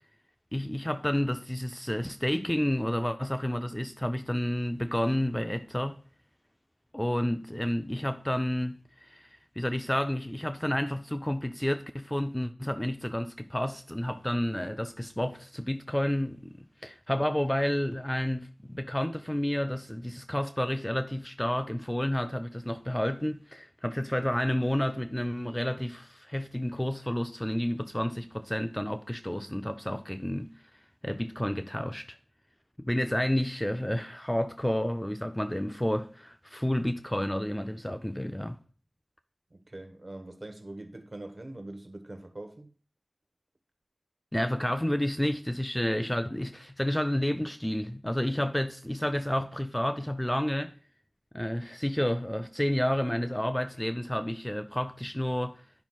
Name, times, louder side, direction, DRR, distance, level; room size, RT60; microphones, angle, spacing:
voice 1, 0.5-6.0 6.9-30.5 31.0-32.2 32.8-38.6 44.3-50.7 51.3-55.6, left 1 dB, 10° left, 0.4 m, -30 dB
voice 2, 39.5-42.7, right 2 dB, 40° right, 1.1 m, -43 dB
10.5 x 5.7 x 2.3 m
wide cardioid pair, 70°, 0 cm